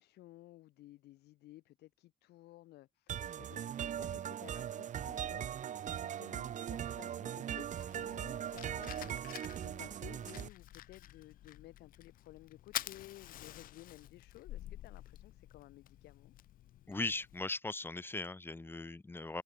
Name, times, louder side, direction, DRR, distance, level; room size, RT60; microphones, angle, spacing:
voice 1, 0.0-16.3, left 16 dB, 75° left, 2.2 m, -56 dB
sound 1, 3.1-10.5, right 10 dB, 45° right, 1.0 m, -40 dB
Fire, 7.8-17.5, left 13 dB, 55° left, 0.5 m, -48 dB
voice 2, 16.9-19.4, left 2 dB, 15° left, 1.1 m, -39 dB
cardioid pair, 110°, 17 cm